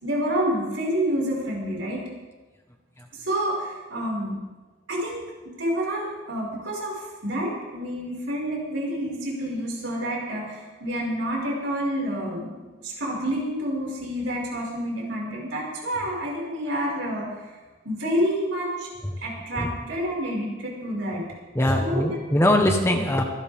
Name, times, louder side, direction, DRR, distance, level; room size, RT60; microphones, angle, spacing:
voice 1, 0.0-2.0 3.2-4.3 4.9-12.5 12.8-17.5 17.8-18.9 19.2-21.2 21.7-22.2, equal, 80° right, -3 dB, 5.6 m, -28 dB
voice 2, 21.5-23.2, left 1 dB, 15° left, 3 dB, 1.3 m, -21 dB
26.0 x 11.5 x 3.7 m, 1.2 s
head